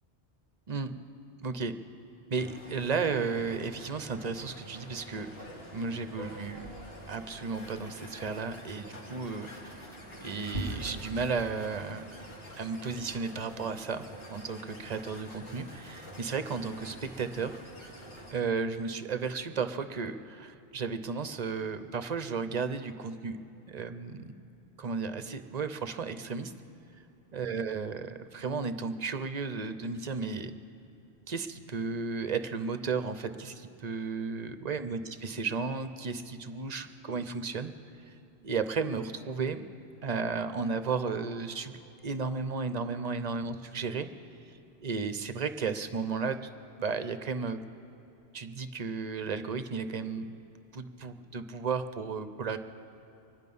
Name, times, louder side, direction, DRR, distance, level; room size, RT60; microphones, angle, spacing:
voice 1, 1.4-1.7 2.3-5.3 5.7-6.7 7.1-9.8 10.2-12.0 12.6-17.5 18.3-23.4 23.7-24.3 24.8-26.5 27.3-30.5 31.3-37.7 38.1-38.2 38.4-39.6 40.0-44.1 44.8-46.4 46.8-47.6 48.3-50.3 50.7-52.6, right 5 dB, 45° right, 10 dB, 0.7 m, -34 dB
sound 1, 2.4-18.3, right 1 dB, 60° left, 2.4 m, -45 dB
24.5 x 10.5 x 5.4 m, 2.9 s
omnidirectional pair, 1.1 m